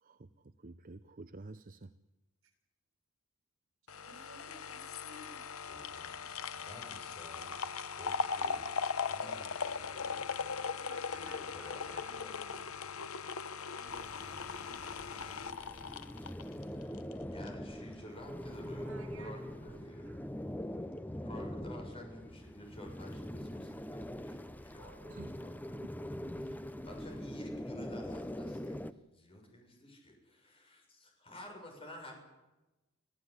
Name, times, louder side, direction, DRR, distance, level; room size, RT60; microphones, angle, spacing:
voice 1, 0.0-1.9 25.1-25.3, right 2 dB, 40° right, 12 dB, 0.8 m, -50 dB
voice 2, 3.8-5.4 10.7-12.6 13.0-17.1 18.8-19.8 20.0-20.3 24.7-25.3, right 2 dB, 70° right, 5 dB, 7.4 m, -58 dB
sound 1, 3.9-17.1 17.5-17.6, left 5 dB, 90° left, 1.0 m, -39 dB
voice 3, 5.7-6.1 6.5-7.5 7.9-8.8 9.1-10.7 11.1-13.0 17.3-20.1 21.2-25.0 25.3-25.6 26.4-28.8 29.1-32.1, left 1 dB, 25° left, 2 dB, 6.9 m, -51 dB
sound 2, 13.9-28.9, equal, 10° left, 0.8 m, -43 dB
26.5 x 16.0 x 9.8 m, 1.0 s
head